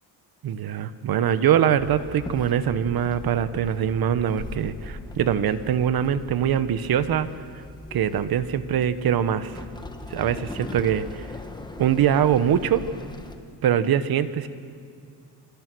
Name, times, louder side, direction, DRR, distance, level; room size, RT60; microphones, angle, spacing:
voice 1, 0.4-7.3 7.9-9.6 10.1-11.3 11.8-12.8 13.6-14.5, right 9 dB, 65° right, 12 dB, 1.3 m, -23 dB
Walk footsteps / Chatter / Hiss, 1.8-13.4, left 2 dB, 10° left, 1.5 m, -40 dB
28.5 x 25.0 x 6.3 m, 2.2 s
cardioid pair, 135°, 40 cm